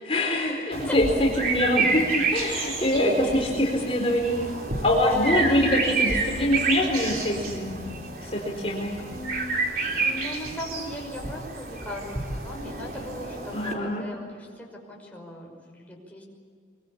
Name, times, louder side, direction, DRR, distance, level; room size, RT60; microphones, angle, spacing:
voice 1, 0.1-4.3 4.8-7.8 8.3-9.0 13.5-14.1, left 1 dB, 35° left, -2 dB, 4.2 m, -24 dB
sound 1, 0.7-13.7, right 3 dB, 55° right, 3.8 m, -29 dB
voice 2, 2.6-3.6 5.1-5.4 9.0-9.6 9.9-16.2, left 1 dB, 10° left, -2 dB, 5.8 m, -38 dB
24.5 x 24.0 x 8.6 m, 2.2 s
head